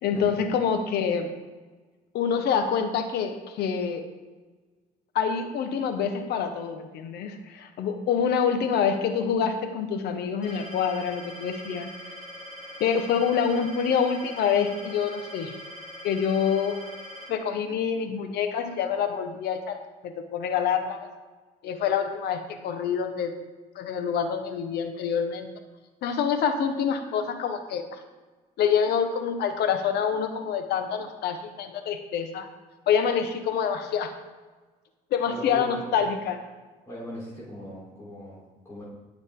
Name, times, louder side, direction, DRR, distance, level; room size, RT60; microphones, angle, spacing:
voice 1, 0.0-1.3 2.1-4.0 5.1-11.9 12.8-15.5 16.0-16.8 17.3-21.1 21.6-23.3 23.7-25.5 26.0-27.8 28.6-32.5 32.9-34.1 35.1-36.4, left 7 dB, 75° left, 7 dB, 1.2 m, -26 dB
sound 1, 10.4-17.3, equal, 40° left, 3.4 m, -42 dB
voice 2, 35.3-35.8 36.9-38.8, left 1 dB, 15° left, -8 dB, 3.7 m, -39 dB
18.0 x 6.5 x 3.8 m, 1.3 s
cardioid pair, 110°, 17 cm